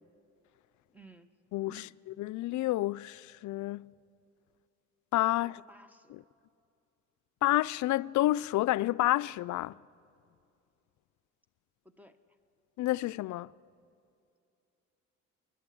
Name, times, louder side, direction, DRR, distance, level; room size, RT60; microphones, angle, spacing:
voice 1, 0.9-1.3 1.6-1.9 5.4-6.2 11.8-12.2, right 2 dB, 5° right, 1.2 m, -55 dB
voice 2, 1.5-1.8 2.2-3.9 5.1-5.6 7.4-9.8 12.8-13.5, left 16 dB, 75° left, 0.4 m, -29 dB
29.5 x 11.5 x 8.6 m
cardioid pair, 90°, 30 cm